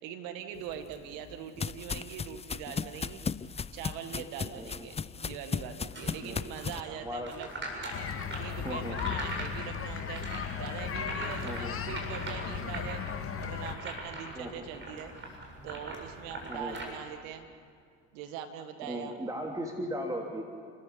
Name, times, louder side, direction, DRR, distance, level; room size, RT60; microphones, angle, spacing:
voice 1, 0.0-3.2 3.7-7.5 8.4-10.3 10.6-13.0 13.4-15.1 15.6-17.5 18.1-19.1, right 9 dB, 75° right, 7 dB, 1.9 m, -42 dB
sound 1, 0.7-6.8, left 5 dB, 20° left, 0.6 m, -36 dB
voice 2, 4.4-4.8 6.2-6.4 6.9-7.3 8.6-9.0 11.4-11.7 14.3-14.6 16.5-16.8 18.8-20.4, equal, 10° right, 1 dB, 3.1 m, -37 dB
sound 2, 5.9-16.8, right 2 dB, 35° right, 7.4 m, -42 dB
sound 3, 7.9-13.8, left 7 dB, 40° left, 1.9 m, -36 dB
30.0 x 14.0 x 8.7 m, 2.3 s
hypercardioid pair, 70°, 34 cm